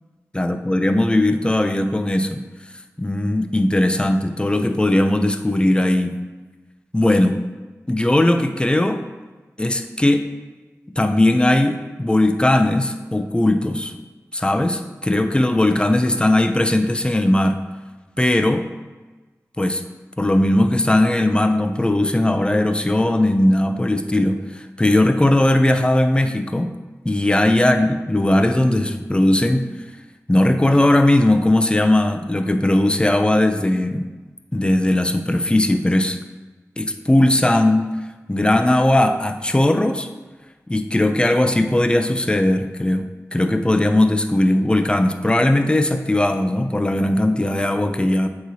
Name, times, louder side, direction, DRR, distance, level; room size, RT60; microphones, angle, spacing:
voice 1, 0.3-2.4 3.0-6.2 6.9-7.4 7.9-9.0 9.6-10.3 11.0-14.0 14.3-17.6 18.2-18.7 19.6-19.8 20.2-26.7 27.0-29.7 30.3-34.1 34.5-36.2 36.8-37.9 38.3-40.1 40.7-48.3, left 1 dB, 15° left, 7 dB, 0.5 m, -18 dB
7.9 x 4.8 x 2.8 m, 1.3 s
wide cardioid pair, 55°, 6 cm